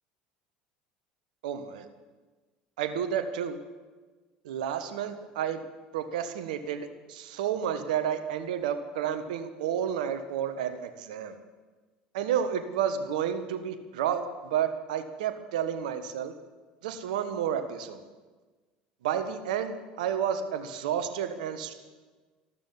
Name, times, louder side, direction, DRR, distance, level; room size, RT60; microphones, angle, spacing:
voice 1, 1.4-1.8 2.8-3.6 4.4-5.6 5.9-11.4 12.1-16.3 16.8-18.0 19.0-21.7, right 8 dB, 70° right, 8 dB, 1.4 m, -31 dB
14.0 x 13.0 x 7.3 m, 1.3 s
figure-of-eight pair, 70°, 4 cm